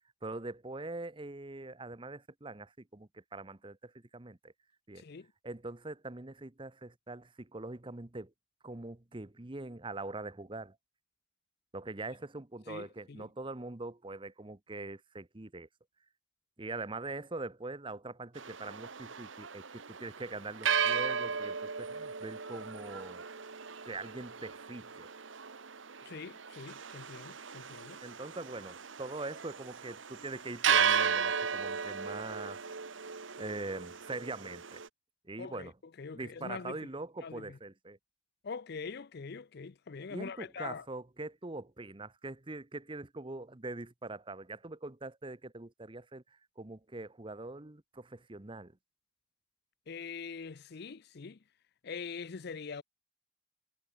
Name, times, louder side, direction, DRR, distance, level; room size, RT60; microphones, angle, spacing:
voice 1, 0.2-4.5 4.9-5.0 5.4-8.3 8.6-10.7 11.7-15.7 16.6-23.2 23.8-25.1 28.0-32.8 33.4-34.8 35.3-35.7 36.1-38.0 40.1-46.2 46.6-48.7, right 2 dB, 25° right, 1.0 m, -43 dB
voice 2, 5.0-5.3 12.7-13.3 26.0-28.0 35.4-35.7 36.0-36.8 37.2-37.6 38.4-40.9 49.9-51.4 51.8-52.8, left 5 dB, 55° left, 0.5 m, -43 dB
sound 1, 18.3-34.9, right 7 dB, 70° right, 1.4 m, -35 dB
head